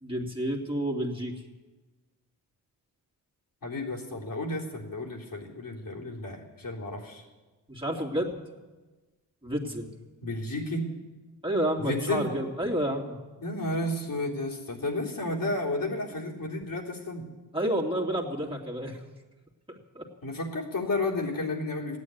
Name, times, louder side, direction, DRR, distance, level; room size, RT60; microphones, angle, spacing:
voice 1, 0.0-1.4 7.7-8.4 9.4-9.9 11.4-13.2 17.5-19.0 19.9-20.0, right 1 dB, 15° right, -2 dB, 2.8 m, -30 dB
voice 2, 3.6-7.2 10.2-10.8 11.8-12.3 13.4-17.3 20.2-22.0, left 2 dB, 55° left, -2 dB, 3.6 m, -32 dB
14.5 x 9.8 x 9.6 m, 1.2 s
cardioid pair, 60°, 41 cm